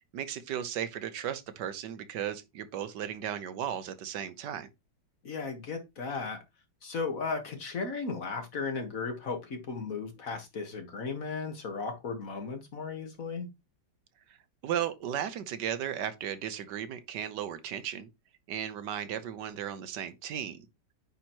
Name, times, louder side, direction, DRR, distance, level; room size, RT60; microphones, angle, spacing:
voice 1, 0.1-4.7 14.6-18.1 18.5-20.7, right 9 dB, 75° right, 1.4 m, -35 dB
voice 2, 5.2-6.4 6.8-13.5, left 4 dB, 50° left, 1.7 m, -35 dB
9.1 x 3.1 x 4.4 m
omnidirectional pair, 1.9 m